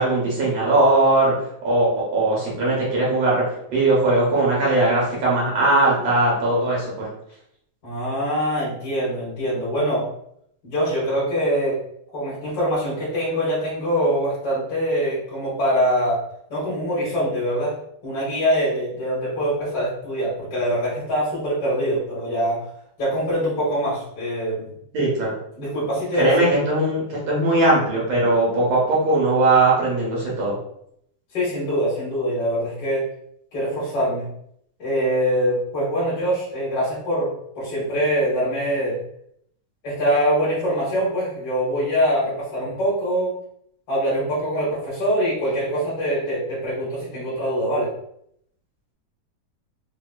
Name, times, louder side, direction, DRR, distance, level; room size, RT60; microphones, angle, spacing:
voice 1, 0.0-1.3 1.6-3.4 3.7-7.1 24.9-25.3 26.2-30.6, right 2 dB, 65° right, -4 dB, 2.0 m, -19 dB
voice 2, 7.8-10.0 10.6-11.8 12.1-16.2 16.5-17.7 18.0-22.6 23.0-24.7 25.6-26.5 31.3-33.0 33.5-34.2 34.8-37.3 37.5-39.0 39.8-43.3 43.9-47.9, equal, 45° left, -8 dB, 1.3 m, -23 dB
4.9 x 2.7 x 2.3 m, 0.72 s
omnidirectional pair, 3.4 m